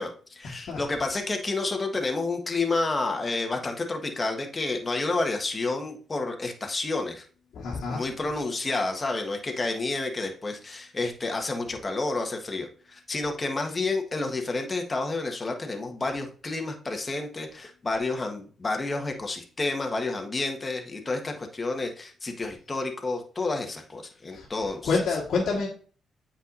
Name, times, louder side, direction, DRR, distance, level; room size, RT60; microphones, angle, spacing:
voice 1, 0.0-7.2 7.9-24.9, left 3 dB, 35° left, 3 dB, 1.5 m, -30 dB
voice 2, 7.5-8.0 24.3-24.5 24.8-25.7, left 4 dB, 65° left, -5 dB, 1.6 m, -27 dB
8.1 x 5.8 x 2.7 m, 0.41 s
hypercardioid pair, 45°, 0 cm